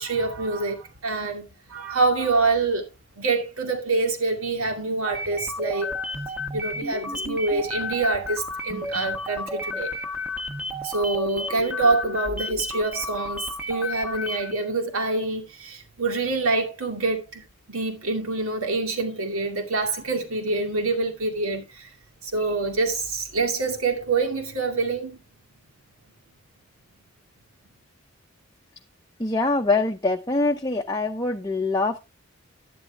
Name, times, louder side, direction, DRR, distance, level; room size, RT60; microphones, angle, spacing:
voice 1, 0.0-2.9 3.2-5.9 6.5-9.9 10.8-21.9 22.2-25.2, right 3 dB, 90° right, 2.4 m, -26 dB
sound 1, 5.1-14.6, left 2 dB, 5° right, 1.0 m, -32 dB
voice 2, 29.2-32.0, left 3 dB, 20° left, 0.6 m, -24 dB
11.0 x 9.3 x 3.4 m
head